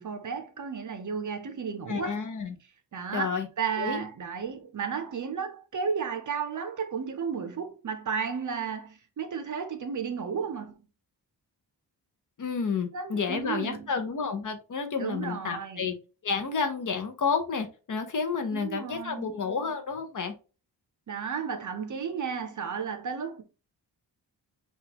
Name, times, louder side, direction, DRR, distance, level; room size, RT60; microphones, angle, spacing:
voice 1, 0.0-2.2 2.9-10.9 12.9-13.9 15.0-15.9 18.5-19.3 21.1-23.4, right 6 dB, 45° right, 0.6 m, -33 dB
voice 2, 1.9-2.5 3.1-3.5 3.8-4.0 12.4-15.9 16.2-20.3, left 5 dB, 45° left, 0.7 m, -30 dB
5.7 x 2.4 x 2.8 m
wide cardioid pair, 180°, 43 cm